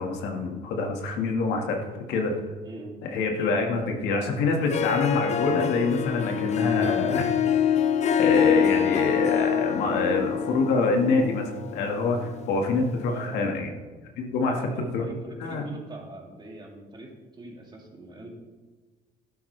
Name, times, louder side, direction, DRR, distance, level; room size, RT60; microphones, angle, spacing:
voice 1, 0.0-1.8 2.1-2.4 3.0-7.3 8.2-13.7 14.2-14.5 14.9-15.0 15.4-15.6, left 3 dB, 85° left, 2 dB, 1.7 m, -25 dB
voice 2, 2.6-3.0 13.1-13.6 14.4-18.3, right 2 dB, 25° right, 0 dB, 2.7 m, -42 dB
Harp, 4.5-13.1, left 8 dB, 40° left, 0.6 m, -26 dB
12.0 x 11.5 x 3.3 m, 1.3 s
cardioid pair, 110°, 17 cm